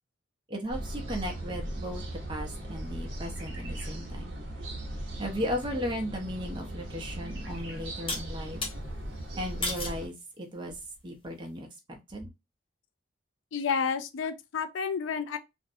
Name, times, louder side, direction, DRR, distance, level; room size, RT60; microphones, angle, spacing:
voice 1, 0.5-2.0 2.3-4.3 5.2-8.6 9.4-10.8 11.0-12.3, equal, 25° right, 0.6 m, -36 dB
sound 1, 0.7-10.1, right 1 dB, 70° right, 0.8 m, -38 dB
sound 2, 8.1-8.7 9.6-10.0 10.7-11.1, left 2 dB, 30° left, 0.6 m, -34 dB
voice 2, 13.5-15.4, left 6 dB, 70° left, 0.4 m, -30 dB
2.5 x 2.1 x 2.6 m
head